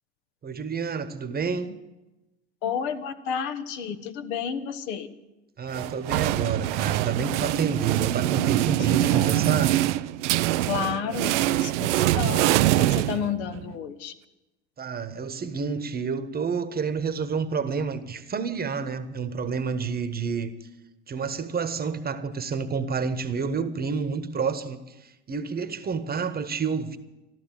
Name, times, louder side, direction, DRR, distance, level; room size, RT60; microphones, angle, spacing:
voice 1, 0.4-1.7 5.6-9.8 14.8-20.5 21.1-27.0, right 5 dB, 25° right, 1.3 m, -29 dB
voice 2, 2.6-5.1 8.3-9.5 10.7-14.1, left 7 dB, 65° left, 1.4 m, -32 dB
sound 1, 5.7-13.7, right 15 dB, 70° right, 0.6 m, -24 dB
14.0 x 12.5 x 7.7 m
hypercardioid pair, 85°, 36 cm